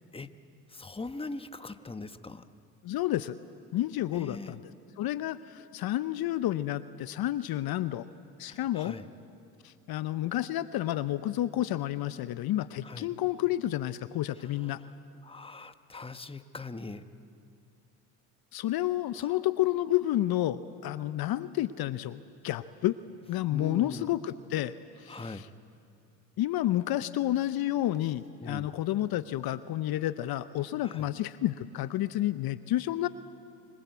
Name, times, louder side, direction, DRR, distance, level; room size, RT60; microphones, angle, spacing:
voice 1, 0.7-2.4 4.1-4.5 8.5-9.0 12.8-13.1 15.2-17.0 19.3-19.4 23.5-24.1 25.1-25.4 28.4-28.7 30.8-31.1, left 3 dB, 15° left, 10 dB, 1.2 m, -41 dB
voice 2, 2.8-3.4 3.7-4.6 5.0-8.1 8.4-9.0 9.6-14.8 18.5-23.0 23.3-24.7 25.0-25.5 26.4-33.1, left 14 dB, 60° left, 14 dB, 0.8 m, -30 dB
26.5 x 21.5 x 8.2 m, 2.5 s
supercardioid pair, 65°, 41 cm